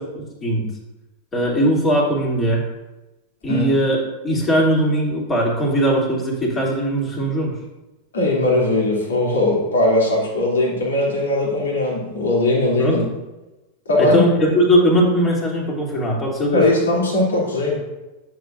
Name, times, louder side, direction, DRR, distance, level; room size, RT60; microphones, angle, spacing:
voice 1, 1.3-2.7 3.4-4.0 4.2-7.6 12.8-13.0 14.0-16.6, equal, 20° left, -4 dB, 2.9 m, -19 dB
voice 2, 8.1-13.0 13.9-14.3 16.5-17.8, left 2 dB, 65° left, -4 dB, 2.9 m, -19 dB
10.5 x 7.5 x 2.6 m, 1.1 s
figure-of-eight pair, 90°, 0 cm